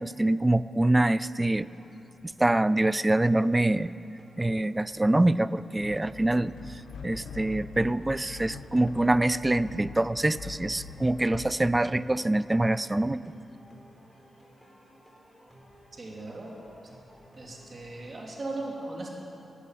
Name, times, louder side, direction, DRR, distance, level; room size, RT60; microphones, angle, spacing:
voice 1, 0.0-1.7 2.4-3.9 4.4-13.2, right 1 dB, 20° right, 17 dB, 0.4 m, -25 dB
Qaim Wa Nisf Msarref Rhythm+San'a, 0.9-18.1, equal, 5° left, 3.7 m, -57 dB
sound 1, 5.8-11.6, left 5 dB, 85° left, 0.8 m, -44 dB
voice 2, 15.9-16.5 17.4-19.1, right 2 dB, 45° right, -1 dB, 3.1 m, -38 dB
14.5 x 8.4 x 9.2 m, 3.0 s
cardioid pair, 55°, 0 cm